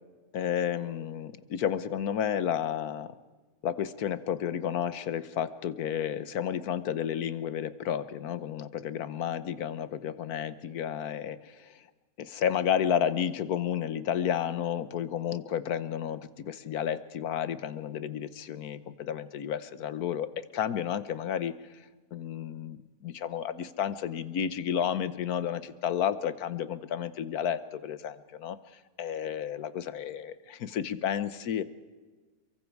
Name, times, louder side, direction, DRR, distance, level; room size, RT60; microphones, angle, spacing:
voice 1, 0.3-3.1 3.6-11.7 12.2-21.5 22.1-28.6 29.0-31.6, left 9 dB, 75° left, 14 dB, 1.4 m, -31 dB
28.5 x 23.0 x 4.7 m, 1.3 s
omnidirectional pair, 1.6 m